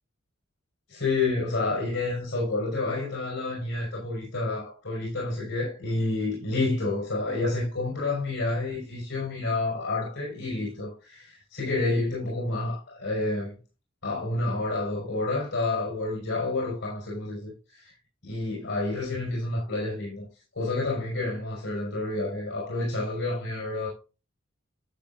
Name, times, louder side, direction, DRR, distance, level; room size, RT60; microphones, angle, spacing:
voice 1, 0.9-13.5 14.0-17.9 18.2-20.3 20.5-23.9, left 2 dB, 65° left, 5.1 m, -29 dB
12.0 x 7.6 x 2.5 m
head